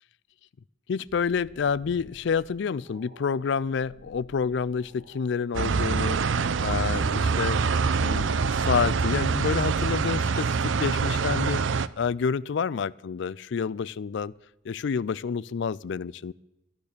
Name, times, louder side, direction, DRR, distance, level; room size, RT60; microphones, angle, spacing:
voice 1, 0.9-6.2 6.6-7.6 8.0-14.3 14.6-16.3, left 6 dB, 60° left, 21 dB, 0.4 m, -29 dB
sound 1, 1.1-5.3 5.8-6.6 7.3-11.5 13.7-14.2, equal, 50° right, 2.2 m, -52 dB
sound 2, 5.5-11.9, right 5 dB, 65° right, 0.5 m, -25 dB
12.0 x 12.0 x 6.6 m, 0.96 s
head